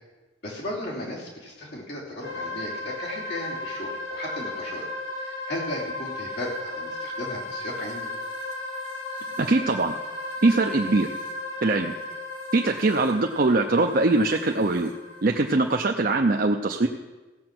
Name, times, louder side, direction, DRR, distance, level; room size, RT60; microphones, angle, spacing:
voice 1, 0.4-4.8 5.2-8.1, left 1 dB, 60° left, -5 dB, 3.0 m, -35 dB
sound 1, 2.2-15.8, left 2 dB, 90° left, 3.5 m, -35 dB
voice 2, 9.4-10.0 10.4-11.1 11.6-11.9 12.5-14.9 15.2-16.9, right 2 dB, 50° right, 3 dB, 0.6 m, -22 dB
16.0 x 7.7 x 6.0 m, 1.2 s
head